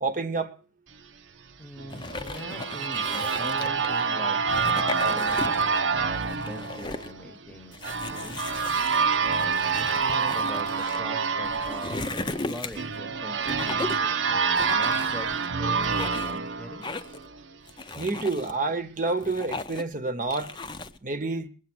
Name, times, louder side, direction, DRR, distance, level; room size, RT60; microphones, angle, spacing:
voice 1, 0.0-0.5 18.0-20.5 21.0-21.5, right 3 dB, 45° right, 1.0 m, -28 dB
voice 2, 1.6-4.4 5.0-7.8 8.1-8.4 9.3-12.2 12.4-15.3 15.6-16.8, left 1 dB, 10° left, 1.1 m, -43 dB
sound 1, 1.8-17.5, right 5 dB, 90° right, 0.9 m, -27 dB
sound 2, 1.9-4.0 4.4-5.8 6.1-7.1 7.7-11.0 11.4-13.0 13.4-14.1 14.5-15.5 15.8-16.4 16.8-17.3 17.7-18.5 19.0-19.9 20.3-21.0, left 3 dB, 25° left, 0.7 m, -36 dB
21.0 x 8.2 x 6.2 m
head